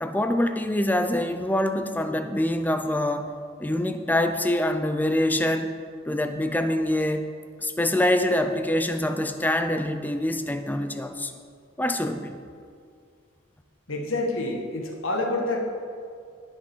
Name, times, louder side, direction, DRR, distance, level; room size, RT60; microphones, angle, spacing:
voice 1, 0.0-3.3 3.6-5.7 6.1-7.3 7.6-11.3 11.8-12.4, left 1 dB, 10° left, 8 dB, 0.5 m, -25 dB
voice 2, 13.9-15.6, left 2 dB, 80° left, 2 dB, 1.6 m, -27 dB
18.5 x 6.2 x 4.5 m, 2.2 s
head